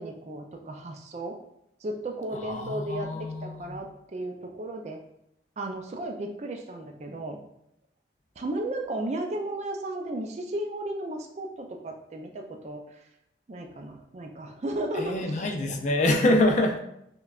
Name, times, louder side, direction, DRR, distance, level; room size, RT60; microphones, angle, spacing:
voice 1, 0.0-1.4 1.8-5.0 5.6-7.4 8.4-13.1 13.5-15.4, right 1 dB, 40° right, 3 dB, 0.4 m, -34 dB
voice 2, 2.3-3.8 14.9-16.8, left 1 dB, 40° left, 3 dB, 0.4 m, -25 dB
5.2 x 2.2 x 2.4 m, 0.78 s
head